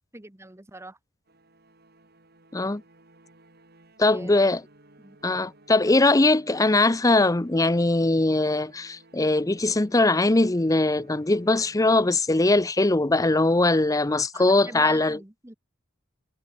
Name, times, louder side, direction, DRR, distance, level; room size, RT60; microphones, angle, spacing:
voice 1, 0.1-1.0 4.0-4.6 5.0-5.2 5.9-6.2 14.3-15.5, right 2 dB, 15° right, 1.0 m, -44 dB
sound 1, 1.3-12.7, right 2 dB, 50° right, 4.6 m, -57 dB
voice 2, 4.0-4.6 5.2-15.2, left 2 dB, 15° left, 0.7 m, -21 dB
head